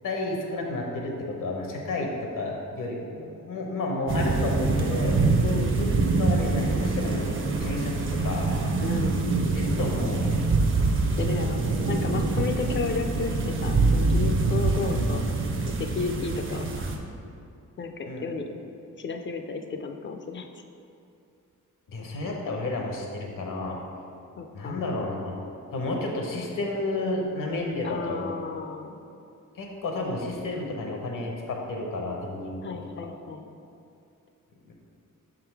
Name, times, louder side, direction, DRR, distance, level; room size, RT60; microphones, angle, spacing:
voice 1, 0.0-1.1 1.4-2.1 2.4-5.1 5.5-7.9 8.2-8.5 9.5-10.4 18.1-18.2 21.9-23.8 24.5-25.4 25.7-28.3 29.5-32.8 34.7-34.8, left 2 dB, 75° left, 0 dB, 0.9 m, -31 dB
sound 1, 4.1-17.0, right 3 dB, 40° right, 0.5 m, -25 dB
voice 2, 5.4-5.8 8.8-9.2 11.2-15.2 15.8-16.7 17.8-18.5 19.0-20.5 24.4-24.8 27.8-29.0 32.6-33.5, left 4 dB, 35° left, 5 dB, 0.4 m, -33 dB
6.1 x 3.8 x 4.5 m, 2.6 s
wide cardioid pair, 160°, 32 cm